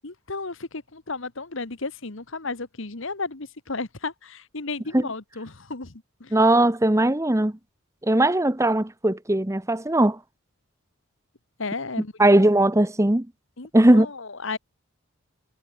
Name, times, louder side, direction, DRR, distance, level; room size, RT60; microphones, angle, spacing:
voice 1, 0.0-6.3 11.6-12.5 13.6-14.6, left 3 dB, 60° left, 1.5 m, -34 dB
voice 2, 6.3-7.5 8.0-10.2 12.2-13.3 13.7-14.1, right 1 dB, 15° right, 0.8 m, -19 dB
head